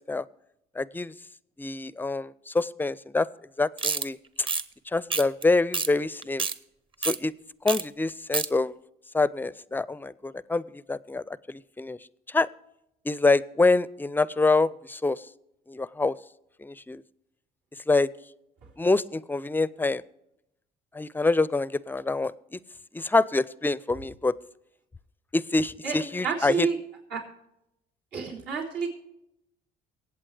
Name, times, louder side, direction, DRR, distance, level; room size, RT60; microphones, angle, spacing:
voice 1, 0.8-1.1 1.6-3.3 3.6-4.2 4.9-6.5 7.1-7.3 7.6-8.7 9.1-12.0 12.3-12.5 13.1-15.2 15.7-16.1 16.6-17.0 17.9-18.1 18.8-20.0 20.9-22.6 22.9-24.3 25.3-26.7, left 3 dB, 10° left, 19 dB, 0.4 m, -26 dB
sound 1, 3.8-4.1 4.4-4.6 5.1-5.4 5.7-5.9 6.2-6.6 7.0-7.2 7.7-7.8 8.1-8.5, right 4 dB, 30° right, 0.8 m, -27 dB
voice 2, 26.2-26.8 27.1-27.2 28.1-28.9, right 5 dB, 80° right, -2 dB, 3.9 m, -28 dB
24.0 x 8.6 x 3.3 m, 0.85 s
cardioid pair, 110°, 17 cm